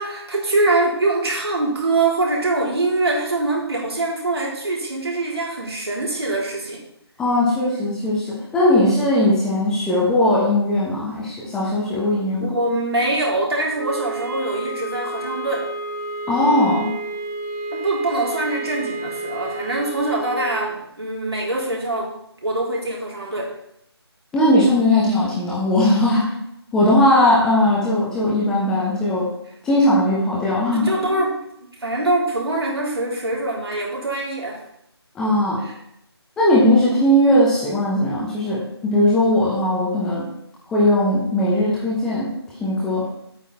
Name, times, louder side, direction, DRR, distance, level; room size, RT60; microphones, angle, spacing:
voice 1, 0.0-6.8 12.4-15.7 17.7-22.1 22.4-23.5 30.7-31.4 31.8-34.6 35.6-35.8, right 2 dB, 70° right, -3 dB, 3.6 m, -23 dB
voice 2, 7.2-12.5 16.3-16.9 24.3-26.3 26.7-29.3 29.6-31.2 35.1-35.6 36.4-40.2 40.7-42.3 42.6-43.1, left 1 dB, 5° left, -6 dB, 1.0 m, -18 dB
sound 1, 13.7-20.7, right 2 dB, 40° right, 1.9 m, -30 dB
8.7 x 8.3 x 4.2 m, 0.78 s
figure-of-eight pair, 160°, 14 cm